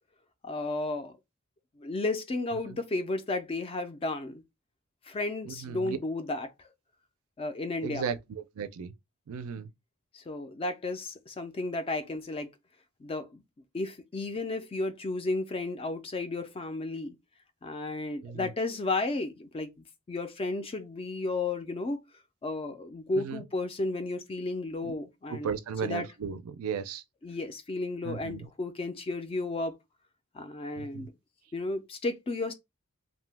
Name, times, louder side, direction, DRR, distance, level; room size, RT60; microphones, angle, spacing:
voice 1, 0.4-1.1 1.8-4.4 5.0-6.7 7.4-8.1 10.1-12.5 13.0-13.4 13.7-17.2 17.6-19.7 20.1-22.0 22.4-25.5 25.8-26.1 27.2-29.7 30.3-31.1 31.5-32.5, left 2 dB, 25° left, 0.3 m, -33 dB
voice 2, 5.4-6.0 7.8-8.9 9.3-9.7 18.2-18.5 23.2-23.4 24.8-24.9 25.3-27.0 28.0-28.4 30.8-31.1, right 6 dB, 70° right, 0.4 m, -35 dB
2.7 x 2.1 x 3.2 m
head